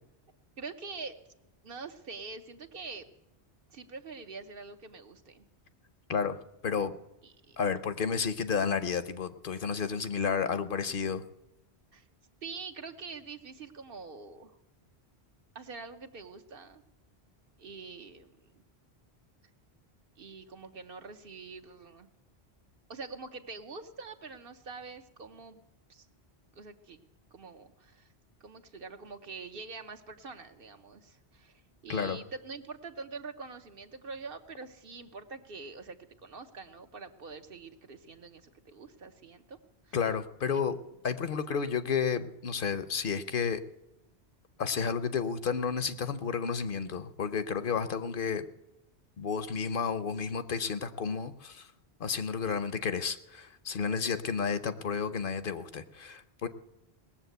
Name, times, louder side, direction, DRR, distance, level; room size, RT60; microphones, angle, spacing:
voice 1, 0.6-1.2 1.6-3.0 3.7-5.5 7.2-7.6 11.9-12.1 12.4-14.5 15.5-16.8 17.6-18.6 20.2-22.1 22.9-25.6 25.9-26.1 26.5-27.0 27.3-28.1 28.4-39.6 39.8-40.0 40.5-40.6, right 4 dB, 60° right, 7 dB, 1.1 m, -45 dB
voice 2, 7.6-11.2 31.9-32.2 39.9-40.8 41.0-43.6 44.6-48.4 49.2-51.7 52.0-56.5, left 6 dB, 60° left, 12 dB, 0.8 m, -31 dB
19.0 x 7.3 x 7.9 m, 0.91 s
omnidirectional pair, 1.1 m